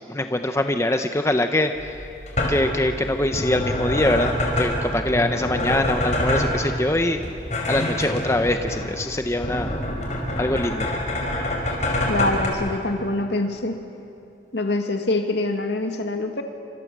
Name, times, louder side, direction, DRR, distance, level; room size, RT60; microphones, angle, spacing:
voice 1, 0.1-1.9 2.5-7.2 7.7-9.7 10.3-10.9, left 1 dB, 15° left, 6 dB, 0.8 m, -23 dB
sound 1, 1.8-12.5, left 1 dB, 40° left, 5.2 m, -26 dB
voice 2, 12.1-13.8 14.5-16.4, left 2 dB, 75° left, 5 dB, 2.0 m, -25 dB
29.5 x 26.0 x 7.5 m, 2.7 s
head